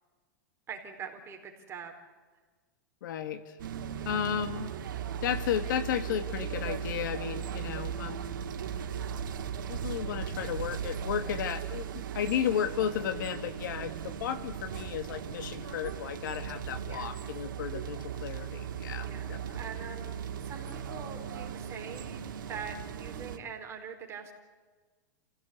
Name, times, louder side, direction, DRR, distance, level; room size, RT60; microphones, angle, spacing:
voice 1, 0.7-1.9 3.9-4.2 16.9-17.1 19.0-19.3 19.6-22.2 22.5-24.3, right 6 dB, 25° right, 2 dB, 4.2 m, -43 dB
voice 2, 3.0-3.6 4.1-4.7 5.2-8.2 9.7-19.6, left 9 dB, 70° left, 11 dB, 1.9 m, -34 dB
sound 1, 3.6-23.4, right 8 dB, 80° right, 2.1 m, -37 dB
29.0 x 16.5 x 8.5 m, 1.4 s
supercardioid pair, 140°, 11 cm